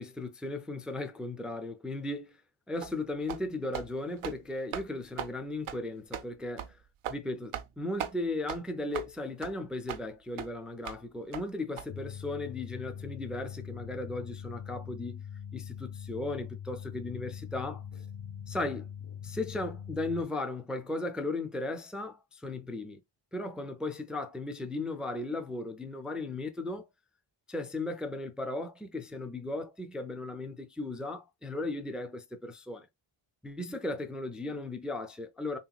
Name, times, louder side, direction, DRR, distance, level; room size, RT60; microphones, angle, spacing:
voice 1, 0.0-2.4 2.7-6.8 7.1-15.3 15.5-17.8 18.5-18.9 19.2-23.0 23.3-26.9 27.5-32.9 33.4-35.6, left 2 dB, ahead, 0.4 m, -36 dB
sound 1, 2.8-3.0 3.3-3.5 3.7-3.9 4.2-4.4 4.7-4.9 5.2-5.3 5.7-5.8 6.1-6.3 6.6-6.7 7.0-7.2 7.5-7.7 8.0-8.1 8.5-8.6 8.9-9.1 9.4-9.5 9.9-10.0 10.4-10.5 10.9-11.0 11.3-11.4 11.8-11.9, right 9 dB, 80° right, 0.6 m, -38 dB
sound 2, 11.9-20.2, left 8 dB, 65° left, 1.4 m, -42 dB
3.2 x 2.9 x 2.3 m
wide cardioid pair, 90°, 49 cm